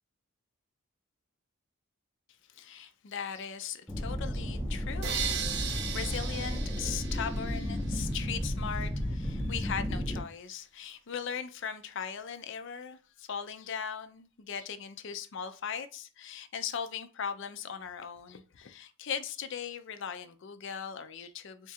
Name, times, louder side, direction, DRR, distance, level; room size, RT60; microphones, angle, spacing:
voice 1, 2.5-21.7, left 7 dB, 55° left, 0.4 m, -39 dB
sound 1, 3.9-10.2, equal, ahead, 0.6 m, -33 dB
sound 2, 5.0-8.0, right 8 dB, 50° right, 0.4 m, -37 dB
3.6 x 2.4 x 4.2 m
head